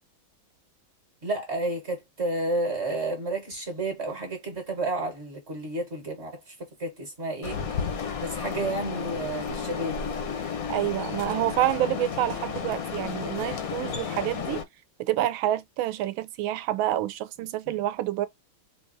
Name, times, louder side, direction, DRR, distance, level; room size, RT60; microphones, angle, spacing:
voice 1, 1.2-7.6 8.2-10.0 13.8-14.0, right 2 dB, 40° right, 1.1 m, -31 dB
sound 1, 7.4-14.6, left 6 dB, 65° left, 0.9 m, -32 dB
voice 2, 10.7-14.6 15.0-18.3, right 13 dB, 80° right, 1.3 m, -28 dB
4.4 x 2.6 x 2.6 m
omnidirectional pair, 2.2 m